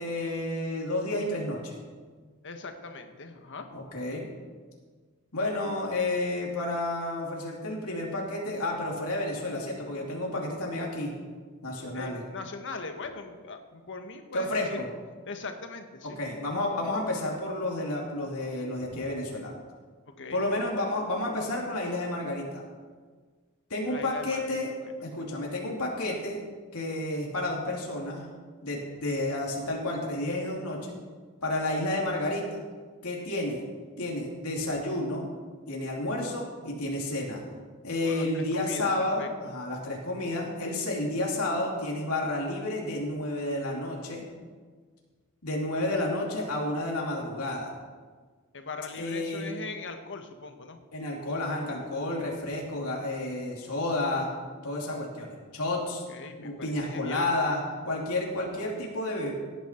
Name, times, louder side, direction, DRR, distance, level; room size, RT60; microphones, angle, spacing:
voice 1, 0.0-1.8 3.7-4.2 5.3-11.1 11.6-12.2 14.3-14.9 16.2-19.5 20.3-22.6 23.7-24.7 25.0-26.4 26.7-28.3 28.6-31.0 31.4-32.5 33.0-33.6 34.0-35.2 35.7-37.4 37.8-44.2 45.4-47.7 48.9-49.5 50.9-54.3 54.6-56.0 56.4-59.3, left 1 dB, 80° left, -2 dB, 2.8 m, -31 dB
voice 2, 2.4-3.7 11.9-14.8 15.2-16.2 18.9-19.1 20.2-20.4 23.9-24.5 24.8-24.9 38.0-38.9 39.2-39.5 48.5-50.8 55.9-57.3, left 4 dB, 60° left, 6 dB, 1.4 m, -40 dB
17.5 x 10.0 x 4.5 m, 1.5 s
head